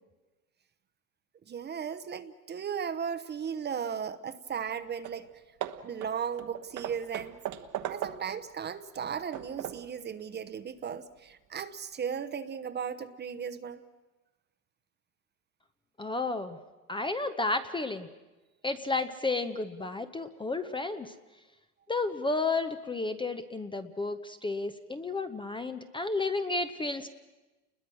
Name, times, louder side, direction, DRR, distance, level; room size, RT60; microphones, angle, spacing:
voice 1, 1.5-5.3 5.8-7.4 7.9-13.8, right 7 dB, 25° right, 11 dB, 0.9 m, -36 dB
Hammer / Wood, 4.7-4.8 5.0-5.3 5.6-8.5 8.9-10.0, right 11 dB, 40° right, 1.2 m, -39 dB
voice 2, 16.0-16.6 16.9-18.1 18.6-21.1 21.9-27.1, left 3 dB, 10° left, 8 dB, 0.8 m, -32 dB
29.5 x 21.0 x 6.2 m, 1.1 s
supercardioid pair, 120°, 45 cm